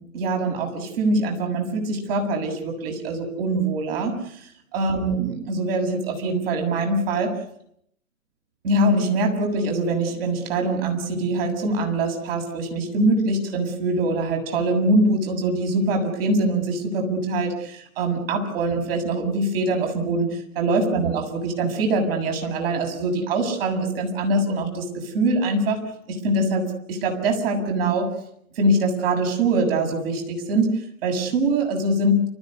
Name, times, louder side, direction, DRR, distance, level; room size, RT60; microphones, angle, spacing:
voice 1, 0.1-4.2 4.7-7.4 8.6-25.8 26.1-28.1 28.6-30.7 31.0-32.2, right 2 dB, 45° right, 2 dB, 7.3 m, -23 dB
29.5 x 15.0 x 9.8 m, 0.71 s
figure-of-eight pair, 120°, 42 cm